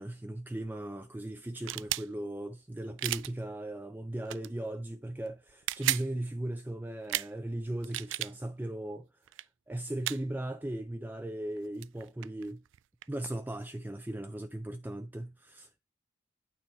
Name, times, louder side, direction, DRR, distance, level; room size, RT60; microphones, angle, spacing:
voice 1, 0.0-9.2 9.7-12.6 13.1-15.8, right 1 dB, 10° right, 0.4 m, -38 dB
sound 1, 1.6-2.1 3.0-3.3 4.3-4.5 5.5-6.1 7.1-7.3 7.8-8.3 9.3-9.4 10.0-10.2 11.6-11.7 11.8-13.1, right 15 dB, 85° right, 0.3 m, -33 dB
8.8 x 4.4 x 4.3 m
head